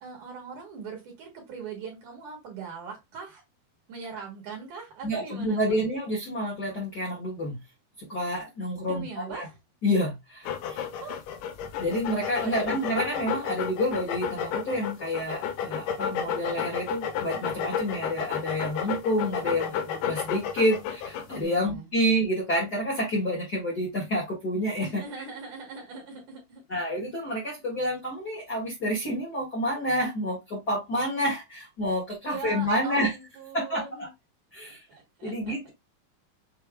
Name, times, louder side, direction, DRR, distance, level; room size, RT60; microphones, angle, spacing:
voice 1, 0.0-3.4 3.9-5.8 8.8-9.6 11.0-11.2 12.4-12.7 21.3-21.9 24.8-26.6 32.3-34.1 34.7-35.6, right 5 dB, 55° right, 2.9 m, -40 dB
voice 2, 5.0-7.6 8.0-9.5 9.8-10.8 11.8-25.0 26.7-33.1 33.5-34.1 34.5-34.8 35.2-35.7, equal, 35° left, 1.6 m, -29 dB
sound 1, 10.4-21.4, left 8 dB, 70° left, 2.1 m, -32 dB
6.8 x 3.3 x 2.2 m
omnidirectional pair, 4.4 m